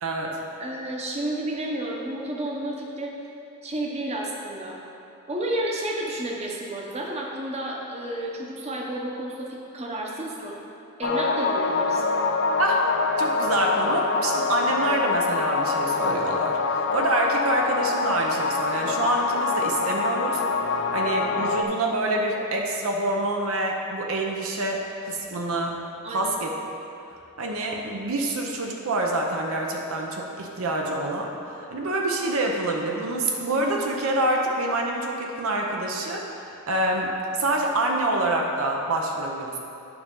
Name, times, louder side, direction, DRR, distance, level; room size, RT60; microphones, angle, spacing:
voice 1, 0.0-0.4 12.6-12.9 13.2-20.4 20.7-25.8 26.1-26.5 27.4-31.3 31.7-39.6, right 2 dB, 70° right, 1 dB, 0.7 m, -26 dB
voice 2, 0.6-3.2 3.6-4.8 5.3-10.6 11.0-12.0 26.0-26.3, right 1 dB, 30° right, -1 dB, 0.9 m, -31 dB
sound 1, 11.0-21.6, left 4 dB, 55° left, 0.4 m, -25 dB
9.7 x 5.3 x 3.7 m, 2.8 s
head